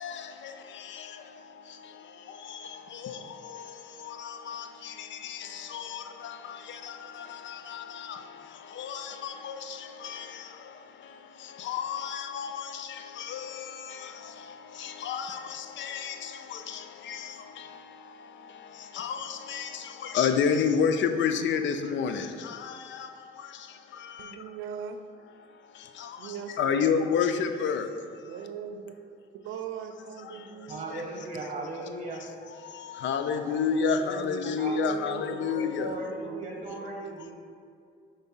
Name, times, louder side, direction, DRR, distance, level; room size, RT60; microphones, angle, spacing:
voice 1, 8.9-9.6 11.7-12.6 13.3-13.4 15.0-15.4 15.8-16.1 17.1-17.2 19.0-19.2 19.5-19.7 20.1-22.3 26.6-27.8 33.0-35.9, left 6 dB, 70° left, 0.6 m, -27 dB
voice 2, 24.2-25.0 26.2-27.3 28.2-29.0 29.3-31.1 34.7-37.3, right 7 dB, 85° right, 0.6 m, -40 dB
voice 3, 30.7-32.3 33.3-37.3, right 2 dB, 35° right, 1.5 m, -38 dB
5.3 x 4.5 x 5.4 m
cardioid pair, 90°, 20 cm